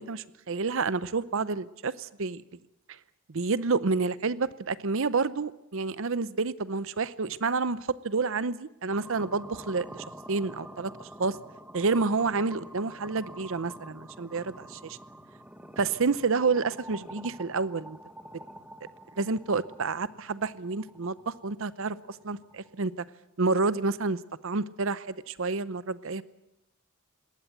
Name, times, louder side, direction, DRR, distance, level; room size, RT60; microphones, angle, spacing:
voice 1, 0.0-2.4 2.9-3.0 3.3-10.9 11.2-11.4 11.7-15.0 15.8-18.0 19.2-23.0 23.4-26.2, right 4 dB, 60° right, 16 dB, 0.7 m, -29 dB
sound 1, 8.9-22.9, right 1 dB, 5° right, 1.5 m, -47 dB
21.0 x 18.5 x 9.2 m, 0.91 s
head